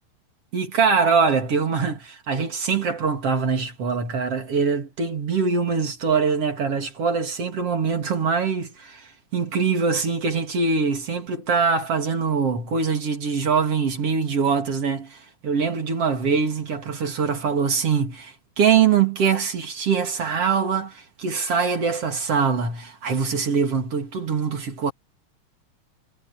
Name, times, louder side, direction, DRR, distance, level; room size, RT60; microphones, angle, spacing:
voice 1, 0.5-24.9, right 5 dB, 50° right, 3.5 m, -23 dB
omnidirectional pair, 3.5 m